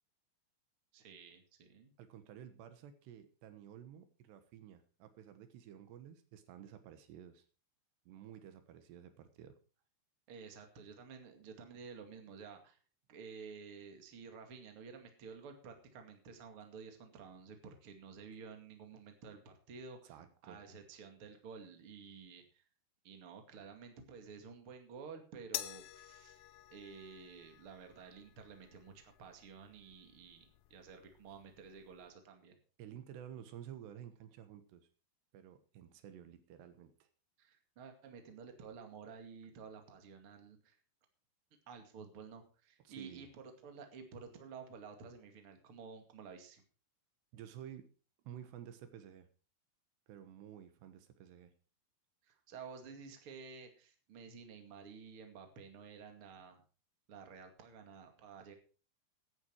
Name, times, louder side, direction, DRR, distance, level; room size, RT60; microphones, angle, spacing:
voice 1, 0.9-1.9 10.3-12.8 13.1-20.1 20.4-22.6 23.0-26.4 26.7-30.4 30.7-32.6 37.4-40.8 41.7-46.6 52.2-56.6 57.1-58.6, right 5 dB, 40° right, 5 dB, 2.5 m, -52 dB
voice 2, 2.0-7.4 8.1-9.6 20.0-20.6 32.8-34.9 35.3-37.1 42.8-43.3 47.3-47.9 48.2-49.3 50.1-51.5, right 10 dB, 80° right, 9 dB, 3.4 m, -52 dB
sound 1, 25.5-32.1, left 14 dB, 85° left, 2.9 m, -50 dB
16.0 x 9.8 x 4.6 m, 0.37 s
omnidirectional pair, 4.8 m